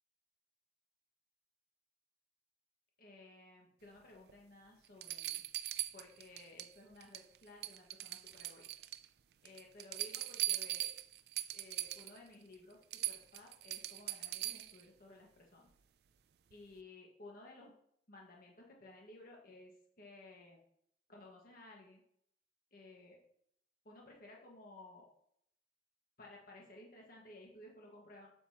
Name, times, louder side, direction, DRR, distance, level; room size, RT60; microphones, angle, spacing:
voice 1, 3.0-5.4 5.9-8.7 9.4-11.0 11.5-15.7 16.5-17.7 18.1-20.6 21.1-22.0 22.7-23.2 23.9-25.1 26.2-28.3, left 2 dB, 55° left, -2 dB, 1.7 m, -56 dB
sound 1, 4.3-4.4 5.0-6.7 7.0-7.4 7.6-9.1 9.5-12.2 12.5-12.6 12.9-14.8 16.5-16.6, right 15 dB, 65° right, 0.4 m, -40 dB
8.1 x 7.2 x 3.0 m, 0.70 s
head